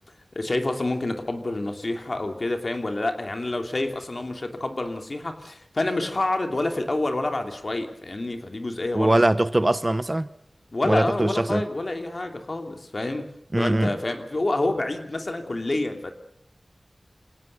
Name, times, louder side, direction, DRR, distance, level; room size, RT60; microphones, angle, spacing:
voice 1, 0.3-9.2 10.7-13.3 13.6-16.1, left 2 dB, 55° left, 3.0 m, -28 dB
voice 2, 8.9-10.3 10.8-11.7 13.5-13.9, right 1 dB, 30° right, 1.0 m, -22 dB
27.5 x 18.0 x 6.8 m
wide cardioid pair, 65°, 0 cm